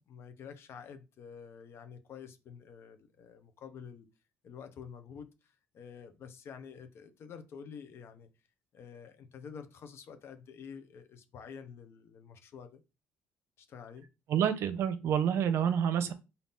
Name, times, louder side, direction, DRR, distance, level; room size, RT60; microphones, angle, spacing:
voice 1, 0.1-4.1 4.4-5.3 5.7-8.3 8.7-12.8 13.6-14.1, left 6 dB, 60° left, 0.7 m, -48 dB
voice 2, 14.3-16.1, right 8 dB, 65° right, 0.6 m, -28 dB
4.0 x 2.7 x 3.6 m
cardioid pair, 90°, 5 cm